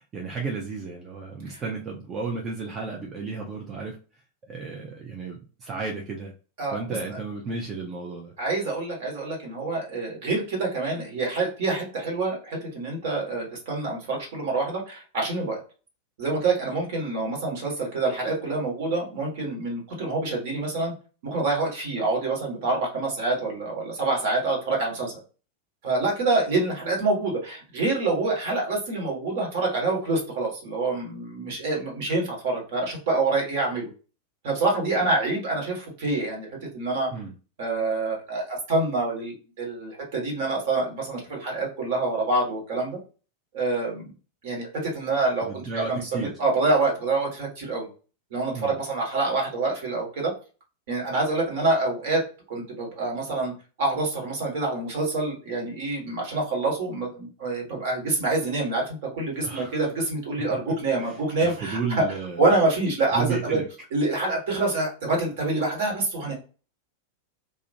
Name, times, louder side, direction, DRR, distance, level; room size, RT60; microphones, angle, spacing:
voice 1, 0.0-4.0 4.5-6.3 6.7-8.3 37.1-37.3 45.4-46.4 48.5-48.7 59.4-59.8 60.4-60.6 61.0-62.4 63.1-63.6, right 4 dB, 25° right, 0 dB, 0.5 m, -33 dB
voice 2, 8.4-15.6 16.2-20.9 21.2-25.2 25.8-33.9 34.4-36.5 36.7-37.1 37.6-43.0 43.5-44.1 44.4-47.9 48.3-50.3 50.9-52.2 52.5-53.5 53.8-62.0 62.4-63.6 63.9-66.3, right 3 dB, 55° right, -1 dB, 1.2 m, -26 dB
2.4 x 2.1 x 2.6 m, 0.36 s
figure-of-eight pair, 90°, 0 cm